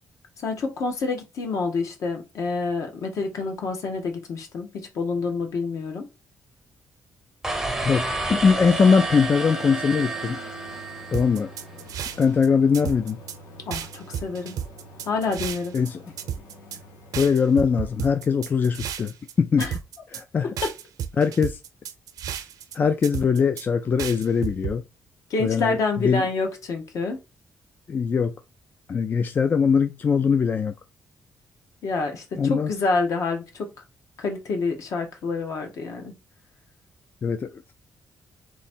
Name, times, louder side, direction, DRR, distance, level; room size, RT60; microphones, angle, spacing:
voice 1, 0.4-6.1 13.7-14.6 15.1-15.7 19.6-19.7 20.4-20.7 25.3-27.2 31.8-33.7 34.2-36.1, left 4 dB, 60° left, 1.2 m, -27 dB
sound 1, 7.4-11.6, right 2 dB, 5° right, 0.6 m, -30 dB
voice 2, 7.8-10.4 11.1-11.5 12.2-13.2 15.7-16.0 17.2-19.7 20.1-20.5 21.2-21.6 22.7-24.9 25.4-26.3 27.9-28.4 28.9-30.7 32.3-32.7 37.2-37.6, left 6 dB, 30° left, 0.3 m, -21 dB
sound 2, 9.4-18.9, equal, 85° left, 1.1 m, -47 dB
sound 3, 11.1-12.5 12.7-13.4 13.7-15.9 16.2-16.8 17.1-19.3 19.6-20.2 20.6-22.8 23.0-23.6 24.0-24.7, right 9 dB, 85° right, 0.7 m, -32 dB
3.6 x 3.1 x 4.3 m
cardioid pair, 155°, 6 cm